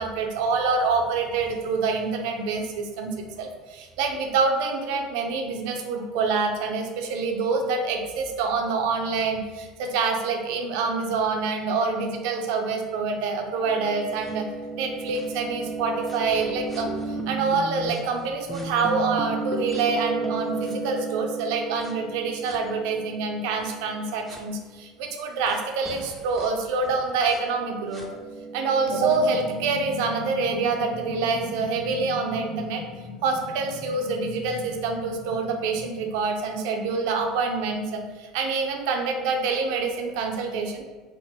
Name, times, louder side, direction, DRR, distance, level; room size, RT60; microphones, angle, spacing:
voice 1, 0.0-14.5 14.8-28.0 28.5-32.8 33.2-40.8, right 4 dB, 70° right, 3 dB, 0.5 m, -26 dB
sound 1, 13.7-18.0 18.5-24.4 25.5-25.6 25.9-29.2, right 3 dB, 10° left, 0.6 m, -34 dB
sound 2, 28.9-36.2, left 4 dB, 90° left, 0.5 m, -39 dB
3.7 x 2.1 x 4.2 m, 1.3 s
hypercardioid pair, 80°, 2 cm